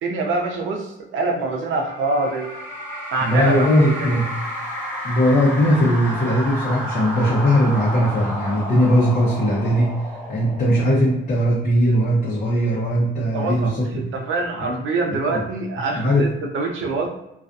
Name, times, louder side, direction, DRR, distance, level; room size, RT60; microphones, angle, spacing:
voice 1, 0.0-2.5 3.1-3.7 4.0-4.1 13.3-17.1, right 3 dB, 80° right, 2 dB, 0.6 m, -25 dB
sound 1, 1.6-11.3, equal, 10° left, 1.1 m, -31 dB
voice 2, 3.2-4.3 5.0-9.9 10.3-14.1 14.6-14.7 15.1-15.4 15.9-16.3, equal, 40° left, -5 dB, 0.7 m, -19 dB
2.4 x 2.2 x 2.5 m, 0.88 s
cardioid pair, 90°, 20 cm